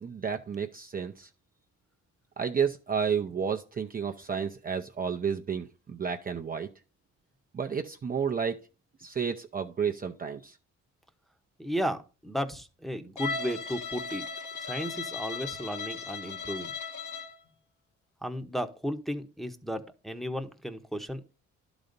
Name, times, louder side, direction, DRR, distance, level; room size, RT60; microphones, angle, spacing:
voice 1, 0.0-1.3 2.4-6.7 7.5-8.6 9.0-10.6, right 7 dB, 30° right, 0.6 m, -31 dB
voice 2, 11.6-14.3 14.6-16.7 18.2-21.3, equal, ahead, 0.9 m, -34 dB
Bowed string instrument, 13.2-17.4, left 5 dB, 80° left, 1.9 m, -37 dB
11.0 x 4.0 x 5.2 m
cardioid pair, 90°, 30 cm